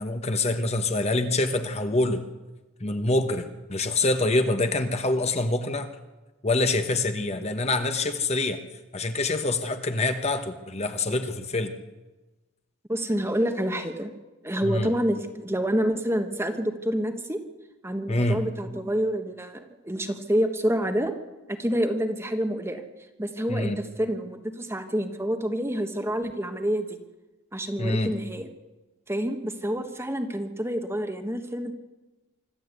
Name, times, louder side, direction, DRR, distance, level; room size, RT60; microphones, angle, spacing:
voice 1, 0.0-2.2 2.8-5.9 6.4-8.6 8.9-11.7 14.6-14.9 18.1-18.4 23.5-23.8 27.8-28.1, left 2 dB, 30° left, 7 dB, 1.2 m, -25 dB
voice 2, 12.9-14.1 14.4-17.4 17.8-21.1 21.5-22.8 23.2-27.0 27.5-28.5 29.1-31.7, equal, 10° right, 6 dB, 1.2 m, -28 dB
25.0 x 13.5 x 8.2 m, 1.1 s
head